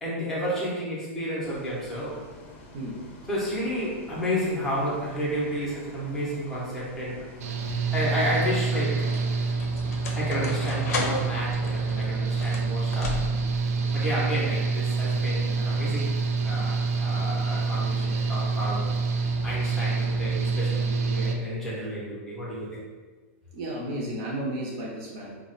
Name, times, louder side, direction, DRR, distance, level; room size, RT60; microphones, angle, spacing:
voice 1, 0.0-2.2 3.2-7.2 7.9-9.1 10.1-13.2 13.9-16.1 16.4-18.9 19.4-22.8, equal, 5° left, -8 dB, 0.6 m, -31 dB
Bus, 1.4-20.4, left 1 dB, 45° left, 0.6 m, -48 dB
sound 1, 6.9-7.3 8.2-13.7, left 3 dB, 90° left, 0.5 m, -36 dB
Engine / Mechanical fan, 7.4-21.3, right 4 dB, 85° right, 0.4 m, -27 dB
voice 2, 23.5-25.4, right 1 dB, 35° right, -4 dB, 0.6 m, -33 dB
2.3 x 2.1 x 3.8 m, 1.4 s
supercardioid pair, 175°, 8 cm